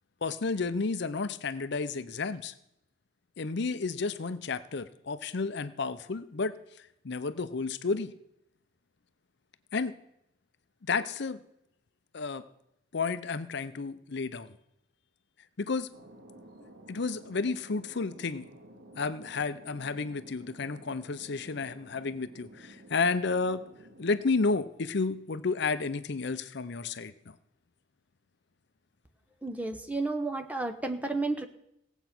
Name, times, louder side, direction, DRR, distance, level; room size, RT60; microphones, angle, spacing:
voice 1, 0.2-2.5 3.4-6.5 7.0-8.1 9.7-9.9 10.8-11.4 12.1-12.4 12.9-14.5 15.6-15.9 16.9-18.5 19.0-23.6 24.0-27.3, left 4 dB, 60° left, 13 dB, 0.6 m, -31 dB
Thunder, 15.9-25.2, right 1 dB, 60° right, 2.2 m, -53 dB
voice 2, 29.4-31.5, right 3 dB, 10° right, 6 dB, 0.9 m, -32 dB
17.5 x 8.1 x 6.0 m, 0.79 s
head